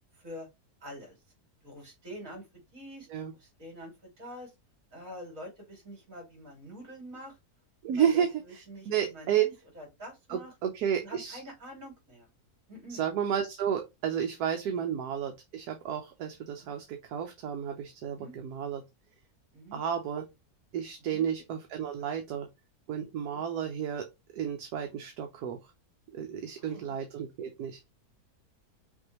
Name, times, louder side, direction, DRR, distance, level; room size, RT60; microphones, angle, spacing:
voice 1, 0.1-0.5 0.8-1.2 1.6-2.5 2.7-3.1 3.4-4.5 4.9-7.4 7.9-10.5 11.0-12.3 12.7-13.0 14.7-14.9 16.6-16.7 18.1-18.3 19.5-19.8 21.0-21.2 22.0-22.1 23.3-23.4 26.6-26.8, equal, 55° right, 2.9 m, -46 dB
voice 2, 7.8-9.5 10.3-11.4 12.9-18.8 19.7-20.2 20.7-22.5 22.9-24.0 24.3-25.7 26.1-27.8, right 9 dB, 75° right, 1.2 m, -32 dB
5.8 x 2.7 x 2.9 m
omnidirectional pair, 1.7 m